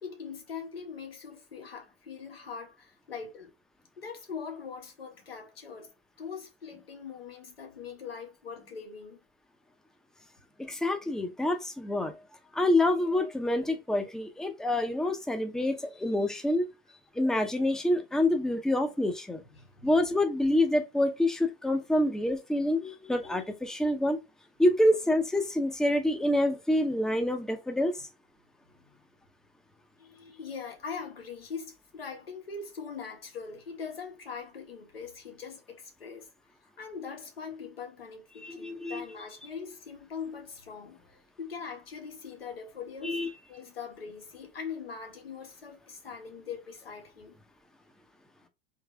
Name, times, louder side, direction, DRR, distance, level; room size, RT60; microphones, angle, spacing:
voice 1, 0.0-3.5 4.0-5.9 6.2-9.2 13.7-13.8 19.5-20.0 28.6-29.0 30.0-36.3 36.6-47.3, left 6 dB, 90° left, 1.6 m, -42 dB
voice 2, 10.6-12.1 12.5-16.6 17.1-19.4 19.8-24.2 24.6-28.0 38.4-39.0 43.0-43.3, left 1 dB, ahead, 0.8 m, -27 dB
3.7 x 3.1 x 3.4 m
hypercardioid pair, 95°, 29 cm